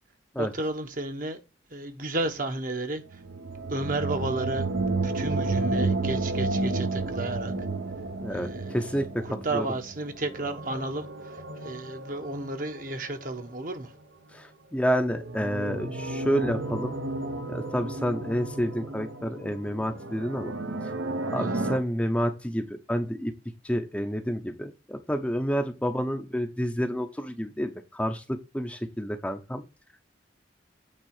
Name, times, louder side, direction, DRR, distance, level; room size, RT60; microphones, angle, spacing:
voice 1, 0.4-1.4 1.7-3.2 3.7-4.7 5.0-7.5 8.3-13.9 21.4-21.7, right 2 dB, 45° right, 1.1 m, -33 dB
sound 1, 3.1-13.8 15.0-21.8, right 2 dB, 75° right, 1.2 m, -32 dB
voice 2, 8.2-9.7 14.3-16.9 17.5-20.5 21.3-23.3 23.6-29.6, equal, 5° left, 0.7 m, -29 dB
8.9 x 3.7 x 6.5 m
head